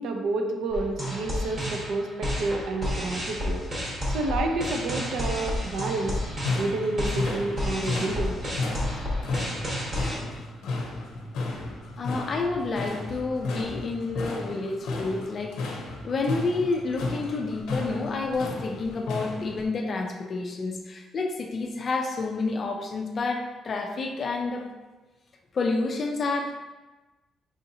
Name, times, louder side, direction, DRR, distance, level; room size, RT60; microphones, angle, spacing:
voice 1, 0.0-3.6 4.1-6.2 6.6-8.6, right 2 dB, 65° right, 4 dB, 0.4 m, -29 dB
sound 1, 0.7-10.2, left 1 dB, 25° right, 0.9 m, -31 dB
sound 2, 6.0-19.6, left 3 dB, 85° left, 0.6 m, -34 dB
voice 2, 12.0-15.6 16.0-24.7 25.5-26.6, left 3 dB, 35° left, 3 dB, 0.4 m, -29 dB
4.8 x 2.7 x 2.6 m, 1.2 s
cardioid pair, 165°, 0 cm